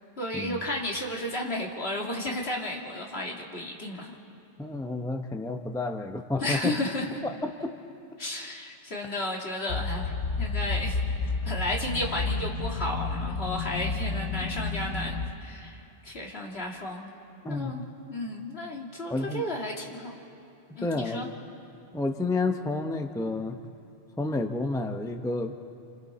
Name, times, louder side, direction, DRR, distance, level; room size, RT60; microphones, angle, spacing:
voice 1, 0.2-4.1 6.4-7.1 8.2-17.1 17.4-20.2 20.8-21.3, left 1 dB, 60° left, -1 dB, 2.6 m, -33 dB
voice 2, 4.6-6.7 7.2-7.7 17.4-17.8 19.1-19.5 20.8-21.3 21.9-23.6 24.2-25.5, left 2 dB, 5° left, 5 dB, 0.7 m, -30 dB
sound 1, 9.7-15.3, left 4 dB, 90° left, 1.2 m, -31 dB
29.5 x 26.5 x 4.2 m, 2.7 s
omnidirectional pair, 1.2 m